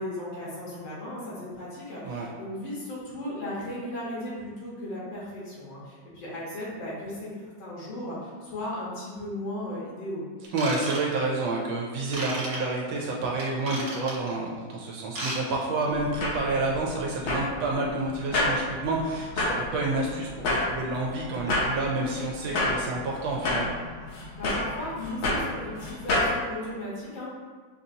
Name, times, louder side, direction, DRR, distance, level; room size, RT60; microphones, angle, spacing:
voice 1, 0.0-10.2 24.3-27.3, left 1 dB, 80° left, -7 dB, 1.9 m, -36 dB
Ratchet pawl / Tools, 10.5-11.4 12.1-12.6 13.4-14.3 15.0-15.4 15.6-15.8 16.3-16.4, right 1 dB, 55° right, 1.3 m, -34 dB
voice 2, 10.5-23.7, right 2 dB, 80° right, -2 dB, 1.3 m, -29 dB
sound 1, 15.9-26.4, left 1 dB, 65° left, 0.9 m, -30 dB
5.5 x 2.6 x 2.7 m, 1.5 s
omnidirectional pair, 2.1 m